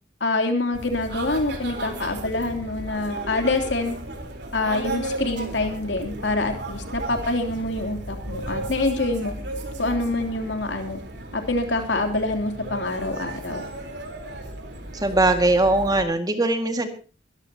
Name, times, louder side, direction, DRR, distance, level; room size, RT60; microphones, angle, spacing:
voice 1, 0.2-3.9 4.5-9.3 9.8-11.0 11.3-13.7, left 2 dB, 70° left, 5 dB, 3.1 m, -26 dB
sound 1, 0.7-16.0, right 2 dB, 65° right, 3.9 m, -35 dB
voice 2, 14.9-16.9, right 2 dB, 20° right, 6 dB, 1.9 m, -20 dB
22.5 x 14.0 x 2.9 m, 0.36 s
head